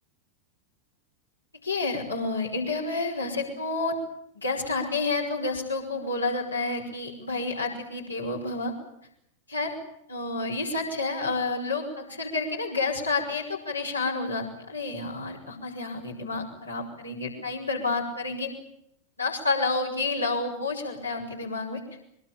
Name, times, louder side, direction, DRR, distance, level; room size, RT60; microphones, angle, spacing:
voice 1, 1.6-4.0 4.3-8.7 9.5-9.8 10.1-18.5 19.2-21.8, left 3 dB, 80° left, 1 dB, 5.5 m, -29 dB
24.0 x 21.0 x 8.7 m, 0.76 s
figure-of-eight pair, 90°, 0 cm